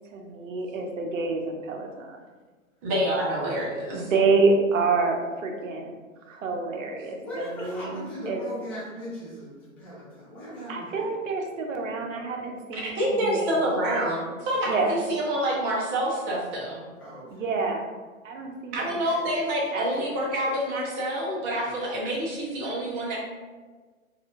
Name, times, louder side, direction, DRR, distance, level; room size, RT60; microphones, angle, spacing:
voice 1, 0.1-2.2 3.9-5.9 6.3-8.4 10.7-13.7 14.6-15.0 17.3-17.9 18.2-19.2 19.7-20.2, right 4 dB, 65° right, 2 dB, 0.8 m, -28 dB
voice 2, 2.8-4.1 12.7-16.8 18.7-23.2, right 1 dB, 20° right, -4 dB, 0.8 m, -27 dB
voice 3, 7.2-11.0 17.0-17.3 21.6-22.0, equal, 5° left, -10 dB, 0.5 m, -38 dB
4.2 x 2.5 x 2.4 m, 1.4 s
hypercardioid pair, 135°, 41 cm